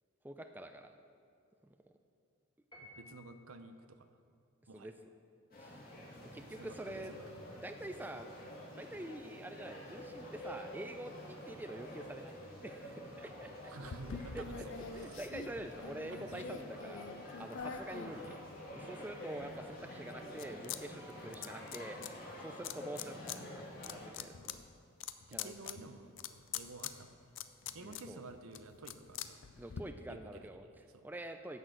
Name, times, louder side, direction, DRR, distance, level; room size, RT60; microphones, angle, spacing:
voice 1, 0.2-0.9 1.6-1.9 4.7-4.9 5.6-5.8 6.3-7.1 7.6-8.3 8.8-12.3 12.6-13.7 14.1-14.7 14.9-18.4 18.7-24.6 25.3-25.5 27.8-28.2 29.6-31.6, right 1 dB, 10° right, 7 dB, 0.4 m, -46 dB
Piano, 2.7-3.6, left 1 dB, 20° left, 1.8 m, -56 dB
voice 2, 2.8-4.1 4.7-4.9 6.6-7.2 13.7-14.7 15.1-15.2 16.1-16.8 24.5-24.6 25.3-27.2 27.7-29.4 30.1-30.5 30.9-31.0, right 3 dB, 85° right, 9 dB, 0.8 m, -51 dB
sound 1, 5.5-24.1, left 1 dB, 45° left, 1.9 m, -49 dB
sound 2, 13.8-18.9 19.4-20.8 21.1-22.1 22.6-23.4 23.7-29.8, left 7 dB, 60° left, 0.5 m, -45 dB
11.0 x 6.3 x 7.7 m, 2.3 s
head